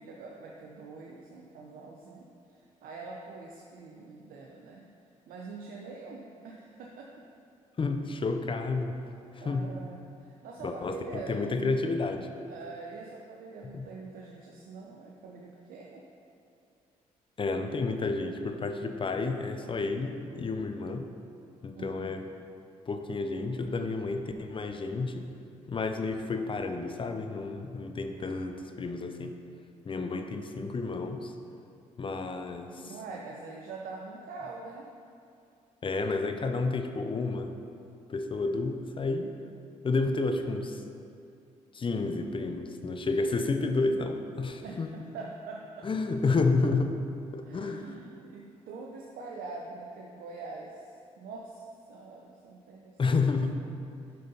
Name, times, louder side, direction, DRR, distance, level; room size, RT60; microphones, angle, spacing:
voice 1, 0.0-4.9 5.3-7.1 9.4-11.4 12.5-16.0 21.7-22.2 32.8-34.9 44.6-45.9 47.4-53.2, right 3 dB, 75° right, -1 dB, 0.7 m, -44 dB
voice 2, 7.8-9.0 9.3-9.7 10.6-12.3 13.7-13.9 17.4-21.1 21.6-22.3 22.9-25.3 25.7-29.4 29.9-31.3 32.0-32.9 35.8-37.6 38.1-39.3 39.8-40.8 41.7-44.9 45.8-47.0 47.3-48.0 53.0-53.5, left 3 dB, 35° left, 6 dB, 0.7 m, -30 dB
7.3 x 5.5 x 4.2 m, 2.5 s
supercardioid pair, 60°, 15 cm